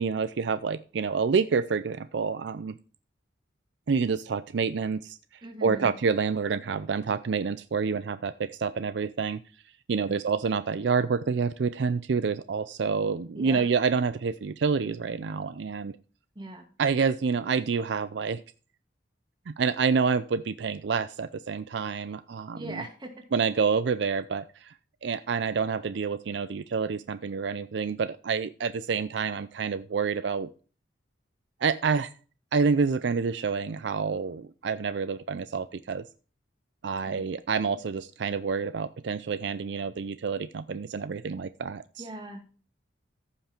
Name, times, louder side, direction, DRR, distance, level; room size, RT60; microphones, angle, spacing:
voice 1, 0.0-2.8 3.9-5.2 5.6-9.4 9.9-16.0 16.8-18.4 19.5-22.8 23.3-24.7 25.0-30.5 31.6-32.1 32.5-36.0 36.8-42.0, right 5 dB, 70° right, 14 dB, 0.4 m, -28 dB
voice 2, 5.4-5.9 10.1-10.2 13.3-13.7 16.4-16.7 22.5-23.1 37.1-37.2 42.0-42.4, right 1 dB, 25° right, 4 dB, 2.0 m, -40 dB
14.5 x 5.7 x 4.4 m, 0.38 s
head